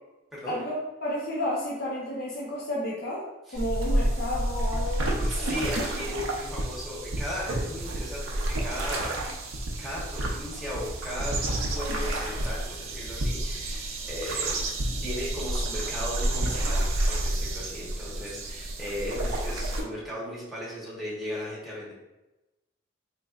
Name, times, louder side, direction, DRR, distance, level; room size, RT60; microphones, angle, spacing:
voice 1, 0.5-3.3 3.5-5.1, left 1 dB, 50° left, -5 dB, 0.7 m, -31 dB
sound 1, 3.6-19.8, right 1 dB, 80° right, 0.6 m, -30 dB
voice 2, 5.2-9.1 9.8-11.3 11.7-14.6 15.0-21.9, equal, ahead, -7 dB, 1.0 m, -36 dB
4.2 x 3.0 x 2.4 m, 1.0 s
head